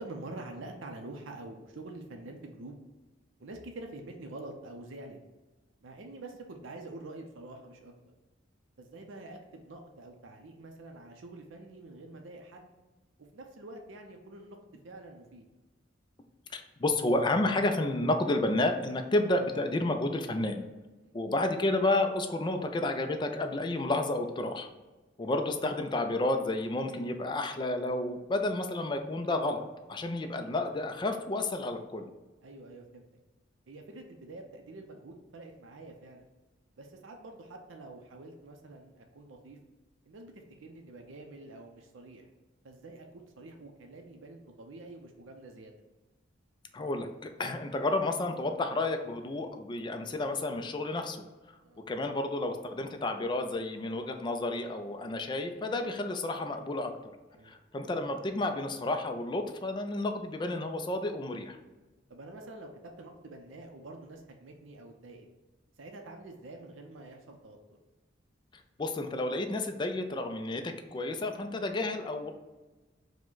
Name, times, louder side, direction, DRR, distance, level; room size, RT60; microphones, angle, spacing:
voice 1, 0.0-2.8 3.4-5.2 5.8-8.1 8.8-12.7 13.2-15.5 21.0-21.1 25.2-25.3 32.4-33.1 33.7-36.3 36.8-39.6 40.0-42.3 42.6-45.7 51.6-51.8 57.3-57.5 62.1-65.3 65.8-67.8, right 2 dB, 85° right, 3 dB, 0.5 m, -47 dB
voice 2, 16.5-20.6 21.1-24.7 25.2-29.6 29.9-32.1 46.7-51.2 51.9-56.9 57.4-61.6 68.8-72.3, left 2 dB, 25° left, 5 dB, 0.4 m, -31 dB
4.9 x 2.2 x 3.8 m, 1.2 s
head